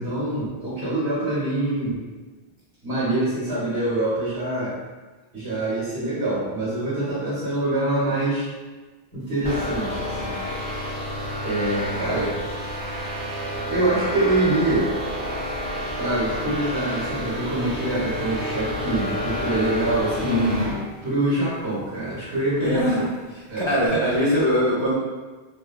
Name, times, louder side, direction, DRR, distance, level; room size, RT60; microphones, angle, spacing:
voice 1, 0.0-2.0 2.8-4.7 5.3-8.5 9.1-10.4 11.4-12.4 13.7-14.9 16.0-20.4 21.0-23.1 23.5-23.7, right 2 dB, 70° right, -11 dB, 1.5 m, -25 dB
sound 1, 9.4-20.8, equal, 50° right, 0.9 m, -29 dB
voice 2, 20.2-20.7 22.6-23.0 23.3-24.9, equal, 40° left, -7 dB, 0.4 m, -22 dB
3.4 x 2.2 x 2.3 m, 1.3 s
omnidirectional pair, 1.1 m